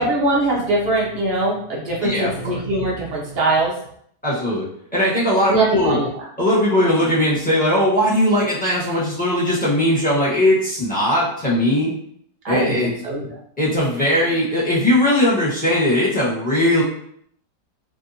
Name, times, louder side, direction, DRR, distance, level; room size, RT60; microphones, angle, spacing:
voice 1, 0.0-3.7 5.5-6.2 12.4-13.4, right 2 dB, 55° right, -3 dB, 0.7 m, -21 dB
voice 2, 2.0-2.6 4.2-4.7 4.9-6.0 6.4-11.9 12.5-12.9 13.6-16.8, left 1 dB, 5° left, -8 dB, 0.9 m, -19 dB
2.8 x 2.5 x 2.7 m, 0.67 s
omnidirectional pair, 1.7 m